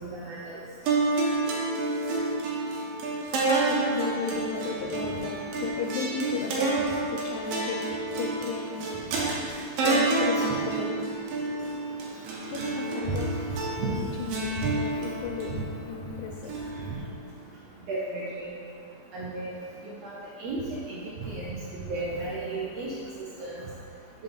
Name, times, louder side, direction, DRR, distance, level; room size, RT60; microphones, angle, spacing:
voice 1, 0.0-0.4 10.3-10.5 13.8-13.9 15.5-15.6 17.9-18.5 19.1-19.6 20.0-21.5 21.9-22.9 23.4-23.5, right 3 dB, 70° right, -6 dB, 1.6 m, -34 dB
sound 1, 0.9-17.3, right 3 dB, 90° right, 2.7 m, -29 dB
voice 2, 3.3-16.9, left 5 dB, 80° left, 0 dB, 1.8 m, -36 dB
6.8 x 4.3 x 5.2 m, 2.4 s
omnidirectional pair, 3.9 m